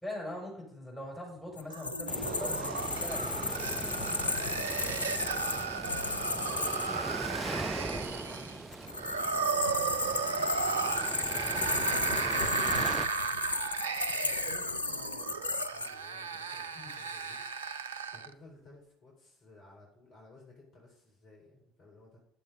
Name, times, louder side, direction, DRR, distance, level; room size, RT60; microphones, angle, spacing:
voice 1, 0.0-3.5 3.8-3.9 16.8-16.9, left 1 dB, 5° left, -2 dB, 5.1 m, -42 dB
sound 1, 1.6-6.9 8.7-15.9, left 3 dB, 80° left, 0.3 m, -35 dB
sound 2, 1.7-18.3, right 5 dB, 75° right, 0.5 m, -35 dB
sound 3, 2.1-13.1, right 2 dB, 15° right, 0.5 m, -40 dB
voice 2, 4.6-13.7 14.2-22.2, left 2 dB, 50° left, -3 dB, 3.9 m, -57 dB
10.0 x 7.4 x 5.3 m, 0.74 s
figure-of-eight pair, 60°, 0 cm